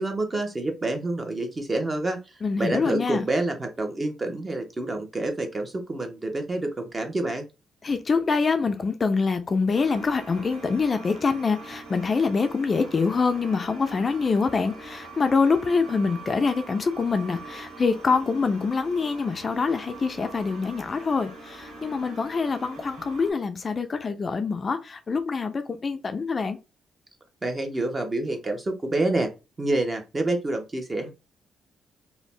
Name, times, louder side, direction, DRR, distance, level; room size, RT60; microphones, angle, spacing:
voice 1, 0.0-7.4 27.4-29.3 29.6-31.1, right 2 dB, 25° right, 0.7 m, -28 dB
voice 2, 2.4-3.2 7.8-26.6, left 4 dB, 35° left, 0.3 m, -25 dB
sound 1, 9.7-23.3, right 2 dB, 75° right, 1.0 m, -43 dB
2.5 x 2.1 x 3.2 m
cardioid pair, 95°, 0 cm